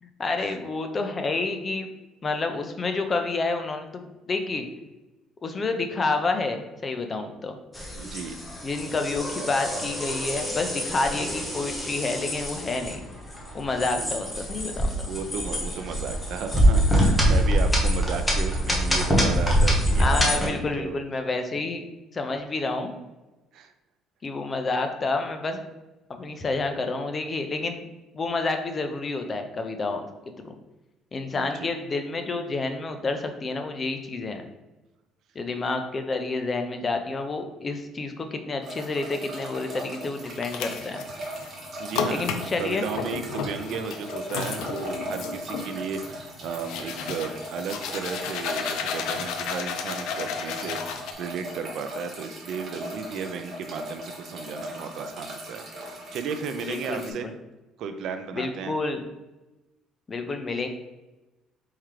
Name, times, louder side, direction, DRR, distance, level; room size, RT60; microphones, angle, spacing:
voice 1, 0.0-1.9 2.2-4.7 5.4-7.6 8.6-13.0 13.5-15.1 20.0-21.8 22.1-23.0 24.2-25.6 26.1-27.8 28.1-30.5 31.1-34.5 35.4-41.0 42.1-42.8 56.6-57.3 58.3-59.0 60.1-60.7, left 3 dB, 25° left, 6 dB, 0.4 m, -29 dB
sound 1, 7.7-20.5, equal, 10° left, 0.8 m, -25 dB
voice 2, 7.9-8.3 14.0-14.1 15.1-20.4 20.7-21.0 23.5-23.7 31.3-31.7 41.8-57.3 57.8-58.7, right 6 dB, 55° right, 8 dB, 0.4 m, -34 dB
sound 2, 38.6-57.1, right 1 dB, 30° right, 1.1 m, -39 dB
sound 3, 40.3-41.5 41.9-51.1, left 6 dB, 75° left, 0.5 m, -33 dB
4.3 x 3.7 x 3.1 m, 1.1 s
cardioid pair, 170°, 0 cm